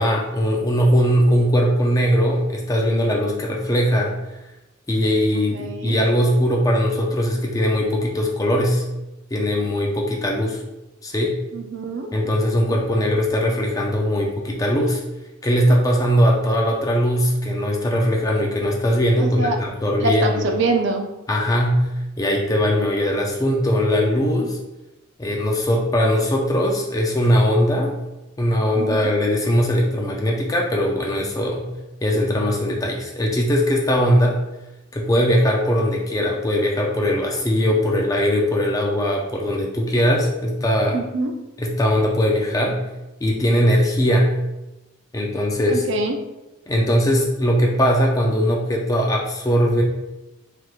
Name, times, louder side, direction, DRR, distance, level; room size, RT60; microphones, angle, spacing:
voice 1, 0.0-4.1 4.9-8.8 9.3-10.6 11.0-11.4 12.1-15.0 15.4-20.5 21.3-21.9 22.2-24.6 25.2-27.9 28.4-31.7 32.0-34.4 34.9-41.0 41.6-42.8 43.2-44.3 45.1-45.9 46.7-49.8, equal, 15° left, -1 dB, 0.3 m, -20 dB
voice 2, 5.5-6.0 11.5-12.1 12.6-12.8 19.2-19.6 20.0-21.1 28.8-29.1 40.9-41.3 45.7-46.2, right 2 dB, 55° right, 3 dB, 0.4 m, -24 dB
3.4 x 3.0 x 2.4 m, 0.99 s
head